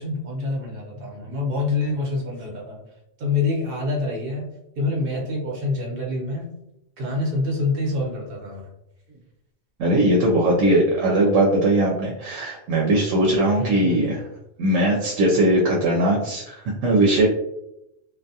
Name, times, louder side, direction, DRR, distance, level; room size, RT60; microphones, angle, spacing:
voice 1, 0.0-2.8 3.2-4.5 4.8-6.5 7.0-8.7 13.6-14.2, left 3 dB, 55° right, -1 dB, 0.9 m, -26 dB
voice 2, 9.8-14.2 14.6-17.3, right 1 dB, 85° right, -2 dB, 0.9 m, -20 dB
2.4 x 2.2 x 2.6 m, 0.85 s
omnidirectional pair, 1.3 m